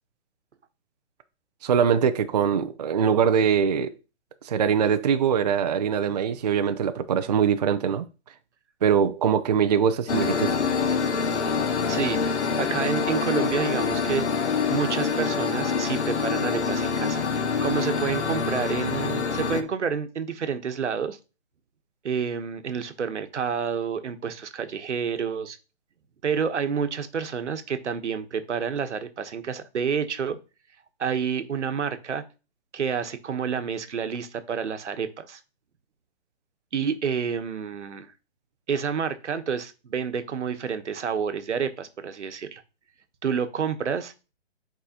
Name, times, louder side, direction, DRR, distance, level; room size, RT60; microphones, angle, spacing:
voice 1, 1.6-3.9 4.4-8.0 8.8-10.6, right 7 dB, 40° right, 0.4 m, -22 dB
sound 1, 10.1-19.6, left 5 dB, 75° left, 1.2 m, -26 dB
voice 2, 11.9-14.2 14.7-17.2 17.6-21.2 22.0-25.6 26.2-30.4 31.0-32.2 32.7-35.4 36.7-38.1 38.7-42.6 43.2-44.1, right 6 dB, 85° right, 1.1 m, -29 dB
8.1 x 4.8 x 2.9 m
hypercardioid pair, 155°, 34 cm